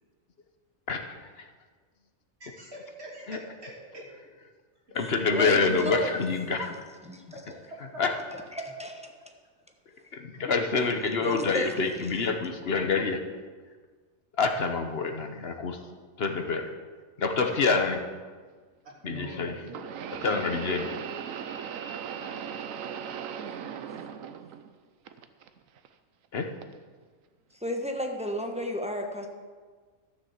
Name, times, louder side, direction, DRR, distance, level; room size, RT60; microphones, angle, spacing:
voice 1, 0.9-1.5 3.3-3.4 4.9-6.8 8.0-8.1 10.1-13.2 14.4-15.8 16.2-16.7 17.2-18.0 19.0-19.6 20.2-21.0 26.3-26.5, left 4 dB, 50° left, 6 dB, 1.1 m, -27 dB
voice 2, 2.4-4.1 7.3-8.0 18.8-19.9, right 1 dB, 50° right, -4 dB, 3.1 m, -44 dB
voice 3, 5.0-6.3 6.6-6.8 7.0-7.3 8.5-9.1 11.1-12.2 22.2-22.4 27.6-29.3, left 1 dB, 5° right, 2 dB, 1.0 m, -33 dB
sound 1, 17.6-17.7 19.7-24.7 25.1-25.9 26.6-26.8 27.7-27.8, right 8 dB, 80° right, 1.1 m, -38 dB
12.5 x 6.8 x 7.2 m, 1.5 s
omnidirectional pair, 1.4 m